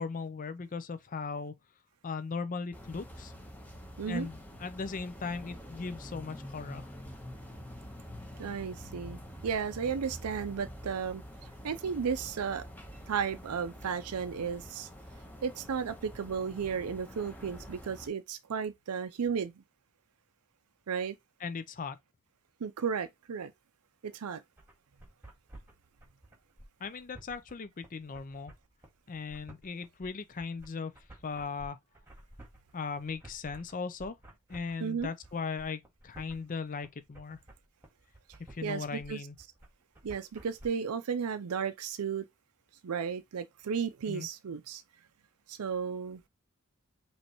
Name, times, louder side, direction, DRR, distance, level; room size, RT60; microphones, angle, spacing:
voice 1, 0.0-1.5 2.0-3.3 4.1-6.9 21.4-22.0 26.8-28.5 29.1-30.9 31.2-31.8 32.7-34.2 34.5-37.4 38.5-39.4 44.1-44.3, left 4 dB, 35° left, 0.5 m, -38 dB
sound 1, 2.7-18.1, equal, 10° left, 1.1 m, -47 dB
voice 2, 8.4-11.2 11.6-12.6 13.1-14.9 15.4-19.5 20.9-21.2 22.6-23.5 24.0-24.4 34.8-35.1 38.6-39.2 40.0-42.2 42.8-44.8 45.5-46.2, right 6 dB, 80° right, 0.5 m, -34 dB
sound 2, 24.6-40.7, right 1 dB, 10° right, 1.9 m, -53 dB
5.2 x 3.2 x 3.0 m
head